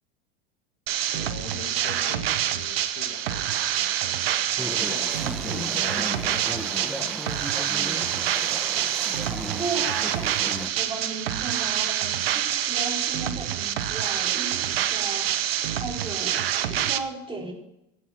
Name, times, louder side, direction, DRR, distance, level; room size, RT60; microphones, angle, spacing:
sound 1, 0.9-17.0, right 11 dB, 85° right, 1.0 m, -26 dB
voice 1, 1.1-7.2, left 7 dB, 65° left, 1.8 m, -43 dB
Chatter / Stream, 4.6-10.7, equal, ahead, 1.1 m, -36 dB
voice 2, 9.3-15.3 15.7-17.5, right 3 dB, 15° right, 4.8 m, -36 dB
15.5 x 7.7 x 6.1 m
hypercardioid pair, 90°, 29 cm